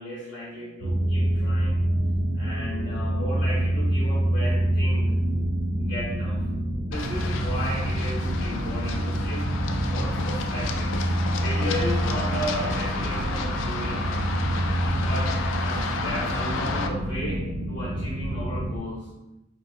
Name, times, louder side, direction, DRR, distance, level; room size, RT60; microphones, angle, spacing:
voice 1, 0.0-1.8 2.3-5.1 5.8-6.4 6.8-9.5 9.9-11.0 11.4-14.2 15.0-19.1, equal, 50° left, -6 dB, 0.7 m, -35 dB
sound 1, 0.8-18.8, right 1 dB, 50° right, 0.4 m, -26 dB
Run, 6.9-16.9, left 4 dB, 85° left, 0.3 m, -32 dB
2.8 x 2.7 x 2.3 m, 0.95 s
head